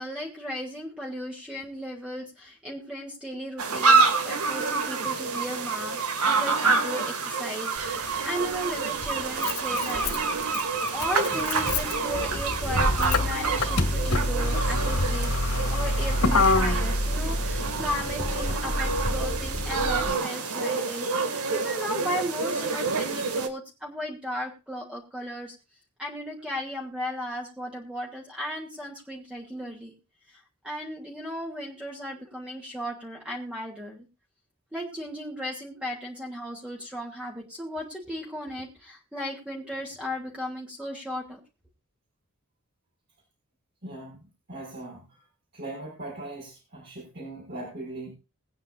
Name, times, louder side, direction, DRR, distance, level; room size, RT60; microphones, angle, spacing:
voice 1, 0.0-6.0 6.2-10.6 10.9-25.6 26.0-29.9 30.3-34.1 34.7-41.4, equal, 5° right, -2 dB, 2.8 m, -36 dB
sound 1, 3.6-23.5, right 4 dB, 90° right, 2.1 m, -27 dB
Motor vehicle (road), 7.8-7.9 9.0-20.1, left 2 dB, 80° left, 2.4 m, -27 dB
voice 2, 43.8-44.2 44.5-45.2 45.5-48.1, right 2 dB, 50° right, -4 dB, 5.9 m, -39 dB
21.5 x 9.4 x 2.6 m, 0.30 s
head